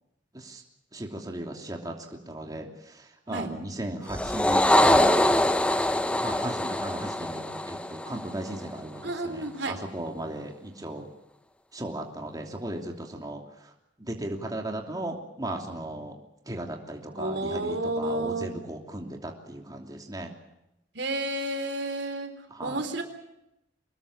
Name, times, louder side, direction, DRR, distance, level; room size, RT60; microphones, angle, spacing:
voice 1, 0.9-5.5 5.8-11.1 11.7-13.7 14.0-16.2 16.5-20.3 22.5-22.8, right 1 dB, 20° right, 2 dB, 3.0 m, -36 dB
sound 1, 4.1-8.7, left 1 dB, 5° left, 1.0 m, -24 dB
voice 2, 9.0-9.8 17.1-18.5 20.9-22.3 22.6-23.0, right 2 dB, 70° right, 7 dB, 3.8 m, -31 dB
25.0 x 20.5 x 7.3 m, 0.86 s
head